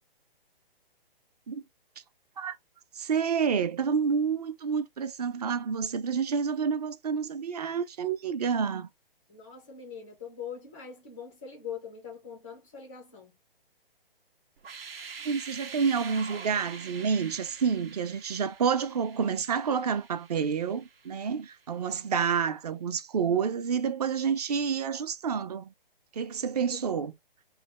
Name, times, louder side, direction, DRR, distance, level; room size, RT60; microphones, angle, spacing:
voice 1, 2.9-8.9 15.2-25.7 26.1-27.1, right 6 dB, 40° right, 0.6 m, -29 dB
voice 2, 9.3-13.3 27.0-27.1, left 7 dB, 10° left, 0.3 m, -42 dB
sound 1, 14.6-21.4, right 5 dB, 75° right, 0.9 m, -45 dB
3.3 x 2.3 x 3.4 m
figure-of-eight pair, 140°, 30 cm